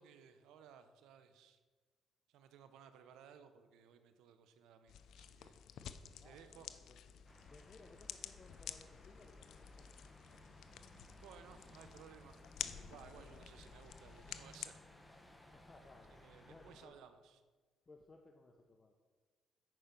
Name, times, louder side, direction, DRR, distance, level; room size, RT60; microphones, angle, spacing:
voice 1, 0.0-1.6 2.3-5.6 6.2-6.7 11.2-14.8 16.2-17.4, right 8 dB, 90° right, 10 dB, 0.7 m, -59 dB
sound 1, 4.9-14.7, left 9 dB, 75° left, 0.5 m, -51 dB
voice 2, 6.2-7.0 7.5-10.7 13.0-13.4 15.5-17.0 17.9-18.9, left 3 dB, 30° left, 2 dB, 0.9 m, -62 dB
sound 2, 7.2-16.9, left 1 dB, 10° left, 1.1 m, -61 dB
9.0 x 5.1 x 5.9 m, 1.4 s
cardioid pair, 90°, 0 cm